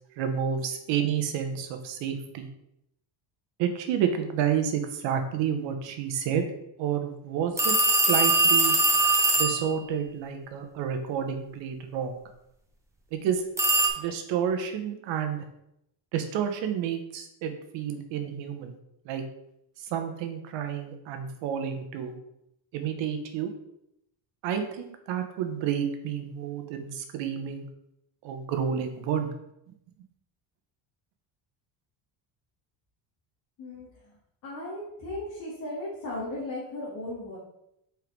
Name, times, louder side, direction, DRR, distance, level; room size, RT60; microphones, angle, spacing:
voice 1, 0.2-2.5 3.6-6.4 6.8-8.7 9.4-12.1 13.1-13.4 14.0-15.4 16.1-18.8 19.0-19.2 19.8-22.1 22.7-23.5 24.4-27.6 28.2-29.3, right 8 dB, 70° right, 6 dB, 1.1 m, -30 dB
sound 1, 7.6-9.7 13.6-13.9, right 2 dB, 5° right, 0.6 m, -21 dB
voice 2, 34.4-37.4, left 1 dB, 40° left, -7 dB, 2.0 m, -36 dB
5.2 x 4.6 x 4.6 m, 0.80 s
cardioid pair, 175°, 45 cm